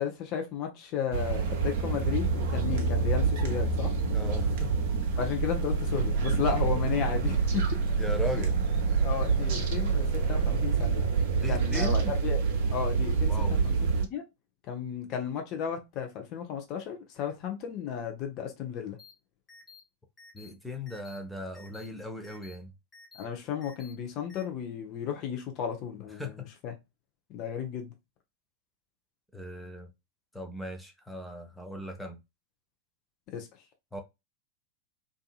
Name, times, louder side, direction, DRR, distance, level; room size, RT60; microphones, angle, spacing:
voice 1, 0.0-3.9 5.2-7.6 9.0-11.1 11.5-12.4 12.7-13.3 13.6-14.2 14.7-19.0 23.1-26.7 27.3-27.9 33.3-33.5, left 8 dB, 40° left, 0.7 m, -34 dB
sound 1, 1.1-14.0, right 4 dB, 50° right, 0.6 m, -27 dB
voice 2, 4.1-4.7 8.0-8.5 11.3-12.2 13.3-13.7 20.3-22.7 26.2-26.5 29.3-29.9 30.3-32.2 33.9-34.0, equal, ahead, 0.7 m, -38 dB
sound 2, 19.0-19.1 19.5-19.8 20.2-20.5 20.9-21.2 21.5-21.9 22.2-22.6 22.9-23.2 23.6-23.9 24.3-24.4, left 4 dB, 20° left, 1.0 m, -52 dB
2.7 x 2.5 x 2.3 m
figure-of-eight pair, 90°, 0 cm